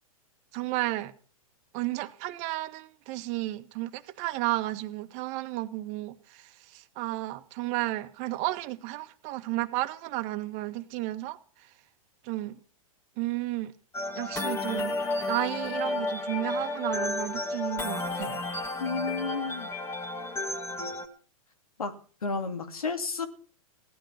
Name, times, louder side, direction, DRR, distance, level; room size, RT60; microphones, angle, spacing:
voice 1, 0.5-1.1 1.7-11.7 12.2-12.6 13.2-13.7 14.1-15.0 15.3-18.4, right 17 dB, 40° right, 1.7 m, -33 dB
sound 1, 13.9-21.1, left 2 dB, 15° left, 2.3 m, -32 dB
voice 2, 18.8-19.7 21.8-23.3, left 4 dB, 85° left, 2.6 m, -32 dB
17.5 x 12.0 x 5.9 m
hypercardioid pair, 115°, 18 cm